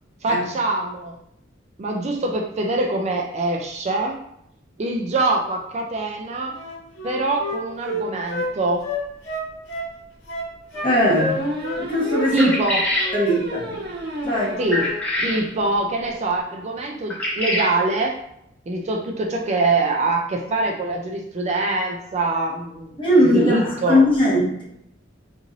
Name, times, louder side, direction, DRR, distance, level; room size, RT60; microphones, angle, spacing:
voice 1, 0.2-1.2 1.8-4.2 4.8-6.6 7.0-8.9 12.3-12.8 14.6-14.9 15.2-18.2 18.7-24.0, right 2 dB, 35° right, 1 dB, 0.4 m, -24 dB
Wind instrument woodwind instrument, 6.5-8.5 8.8-9.9 10.3-10.9 11.1-11.8 12.1-12.3 12.6-13.2 13.5-13.7, equal, 75° left, 1.3 m, -29 dB
sound 1, 9.0-9.1 9.4-9.5 10.7-15.0 15.4-15.5 15.8-15.9 16.1-16.3, right 1 dB, 55° right, 0.9 m, -32 dB
voice 2, 10.8-11.4 11.8-12.5 13.1-13.8 14.2-14.6 23.0-24.6, left 1 dB, 25° left, -5 dB, 1.0 m, -19 dB
sound 2, 12.4-13.2 14.7-15.4 17.1-17.7, left 1 dB, 5° left, 0.7 m, -24 dB
3.0 x 2.6 x 3.8 m, 0.76 s
head